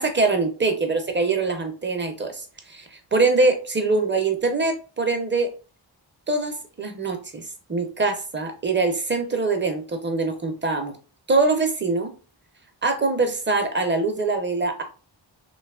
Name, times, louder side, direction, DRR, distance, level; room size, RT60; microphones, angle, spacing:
voice 1, 0.0-5.5 6.3-7.4 7.7-11.0 11.3-12.1 12.8-14.8, right 3 dB, 25° right, 6 dB, 0.6 m, -23 dB
2.9 x 2.3 x 2.3 m, 0.36 s
wide cardioid pair, 45°, 45 cm